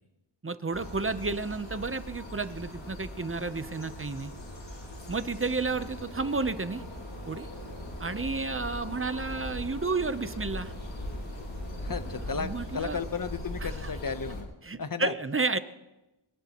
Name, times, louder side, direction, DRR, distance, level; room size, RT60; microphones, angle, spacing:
voice 1, 0.4-4.3 5.1-6.8 7.3-7.5 8.0-10.7 12.3-13.0 13.6-13.9 14.6-15.6, right 3 dB, 25° right, 12 dB, 0.8 m, -31 dB
sound 1, 0.7-14.4, left 1 dB, 65° left, 5.3 m, -40 dB
voice 2, 11.8-14.5 14.8-15.1, left 5 dB, 45° left, 11 dB, 1.0 m, -34 dB
25.0 x 18.0 x 3.0 m, 1.0 s
wide cardioid pair, 75°, 49 cm